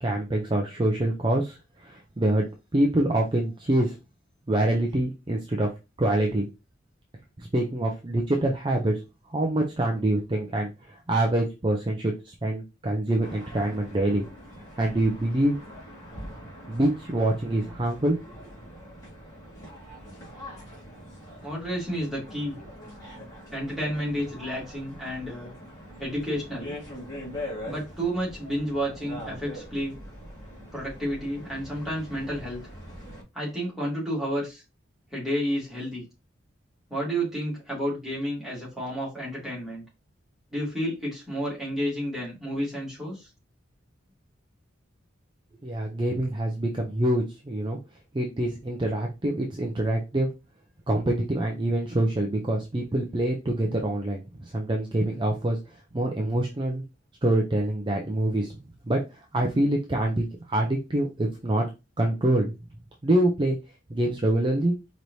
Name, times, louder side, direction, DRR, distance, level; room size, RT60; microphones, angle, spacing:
voice 1, 0.0-2.5 2.7-4.0 4.5-5.7 6.0-6.4 7.4-9.0 9.3-14.2 14.8-15.6 16.7-18.4 45.6-47.8 48.1-50.3 50.9-56.8 57.2-58.5 58.9-61.6 62.0-62.5 63.0-63.6 63.9-64.7, right 1 dB, 25° right, 1 dB, 0.5 m, -25 dB
sound 1, 13.2-33.2, equal, 20° left, 1.9 m, -43 dB
voice 2, 21.4-22.6 23.5-25.5 26.0-26.7 27.6-30.0 30.7-32.6 33.3-34.6 35.1-36.1 36.9-39.8 40.5-43.3, equal, ahead, -6 dB, 2.2 m, -31 dB
4.7 x 3.1 x 2.7 m, 0.26 s
head